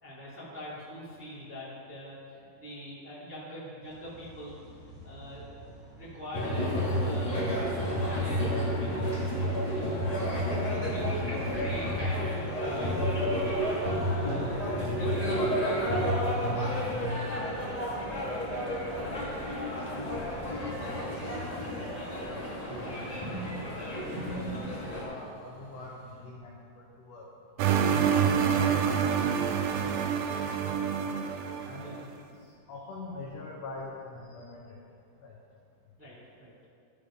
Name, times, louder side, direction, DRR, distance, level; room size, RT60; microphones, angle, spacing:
voice 1, 0.0-4.6 5.0-9.4 9.7-10.1 10.6-13.1 14.1-17.3 19.0-19.5 31.8-32.0 36.0-36.1 36.4-36.5, equal, 5° right, -9 dB, 1.5 m, -44 dB
sound 1, 3.8-21.8, right 1 dB, 30° right, 2.7 m, -50 dB
sound 2, 6.3-25.0, equal, 35° left, 0.5 m, -31 dB
voice 2, 20.1-20.8 21.8-27.3 27.6-27.7 28.1-28.3 28.7-30.2 31.6-34.8 35.2-35.3, left 3 dB, 70° left, -3 dB, 1.6 m, -45 dB
sound 3, 27.6-32.0, right 7 dB, 85° right, 2.3 m, -27 dB
12.5 x 5.0 x 5.1 m, 2.4 s
omnidirectional pair, 4.1 m